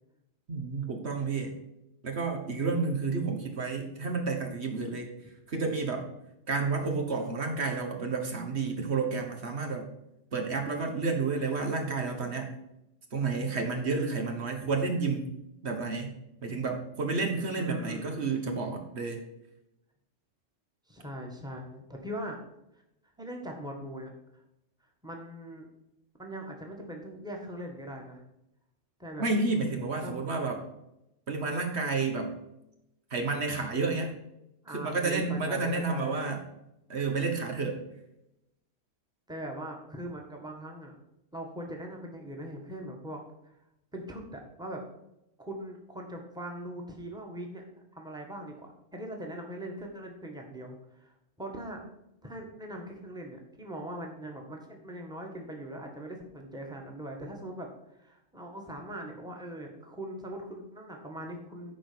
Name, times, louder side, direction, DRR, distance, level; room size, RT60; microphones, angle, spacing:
voice 1, 0.5-1.6 2.0-5.1 5.5-6.1 6.5-9.9 10.3-12.5 13.1-15.3 15.6-19.2 29.2-30.6 31.3-32.4 33.1-34.1 34.7-36.4 36.9-37.8, right 4 dB, 60° right, 3 dB, 1.5 m, -30 dB
voice 2, 17.4-18.2 20.9-22.4 23.2-24.4 25.0-25.7 26.2-28.2 29.0-29.2 30.0-30.3 34.6-36.2 39.3-40.9 41.3-43.5 43.9-44.8 45.4-47.6 47.9-51.8 52.2-61.7, right 1 dB, 5° right, 1 dB, 1.6 m, -41 dB
10.5 x 4.5 x 6.9 m, 0.86 s
omnidirectional pair, 1.3 m